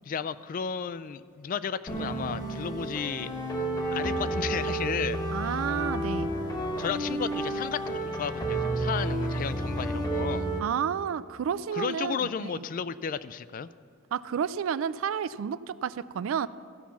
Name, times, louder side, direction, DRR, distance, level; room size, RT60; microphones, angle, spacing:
voice 1, 0.1-3.3 3.9-5.6 6.8-10.5 11.7-13.7, left 7 dB, 40° left, 15 dB, 0.3 m, -33 dB
sound 1, 1.9-10.6, right 1 dB, 20° left, 1.1 m, -31 dB
voice 2, 5.3-6.3 10.6-12.5 14.1-16.5, right 7 dB, 70° right, 17 dB, 0.3 m, -31 dB
14.5 x 5.7 x 7.3 m, 2.1 s
head